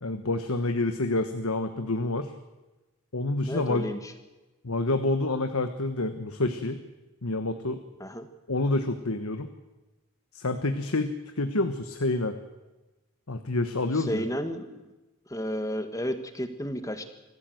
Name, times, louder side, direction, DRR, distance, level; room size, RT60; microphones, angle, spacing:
voice 1, 0.0-2.3 3.1-3.9 4.6-6.8 7.2-7.8 8.5-9.5 10.3-12.3 13.3-14.2, left 2 dB, 75° left, 8 dB, 1.3 m, -28 dB
voice 2, 3.5-4.1 8.0-8.3 13.9-14.8 15.3-17.1, equal, 15° left, 9 dB, 1.5 m, -32 dB
25.0 x 15.0 x 7.9 m, 1.1 s
head